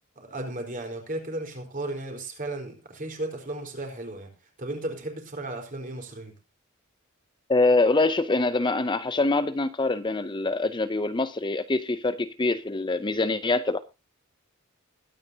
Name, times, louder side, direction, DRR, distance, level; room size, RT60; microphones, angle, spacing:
voice 1, 0.2-4.3 4.6-6.3, right 2 dB, 40° right, 4.4 m, -35 dB
voice 2, 7.5-13.8, left 2 dB, 20° left, 0.6 m, -24 dB
21.5 x 9.6 x 2.8 m
head